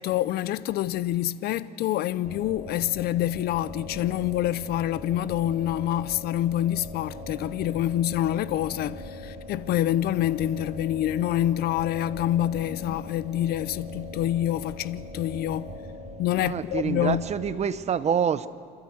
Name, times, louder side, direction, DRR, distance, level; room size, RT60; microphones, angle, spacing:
voice 1, 0.0-15.8 16.2-17.2, left 12 dB, 70° left, 0.6 m, -27 dB
sound 1, 2.2-17.5, left 1 dB, 20° right, 3.8 m, -41 dB
voice 2, 16.4-18.5, right 7 dB, 40° right, 0.8 m, -26 dB
28.0 x 13.0 x 7.8 m
cardioid pair, 110°, 17 cm